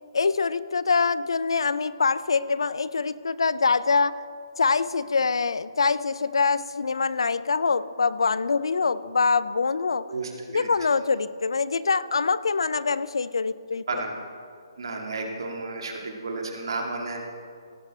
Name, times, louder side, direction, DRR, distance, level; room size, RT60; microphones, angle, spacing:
voice 1, 0.1-4.2 4.6-10.1 10.5-14.0, left 4 dB, 80° left, 17 dB, 0.4 m, -24 dB
voice 2, 10.1-10.7 13.9-14.2 14.8-17.2, right 3 dB, 70° right, 1 dB, 2.2 m, -32 dB
17.0 x 8.1 x 4.2 m, 2.3 s
hypercardioid pair, 150°, 3 cm